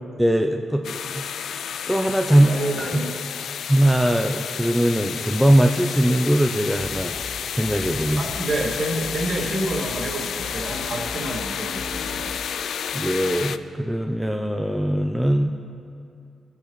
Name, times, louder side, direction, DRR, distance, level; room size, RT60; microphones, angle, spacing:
voice 1, 0.2-1.3 1.9-2.5 2.8-3.2 3.7-7.1 7.5-8.3 12.9-15.5, right 1 dB, 5° right, 3 dB, 0.4 m, -21 dB
sound 1, 0.8-13.6, left 8 dB, 70° left, 0.3 m, -31 dB
voice 2, 2.4-3.1 8.1-12.4, right 1 dB, 50° right, -4 dB, 2.1 m, -28 dB
Snare drum, 6.8-12.3, left 1 dB, 50° left, 1.4 m, -39 dB
17.5 x 8.5 x 3.1 m, 2.5 s
cardioid pair, 115°, 0 cm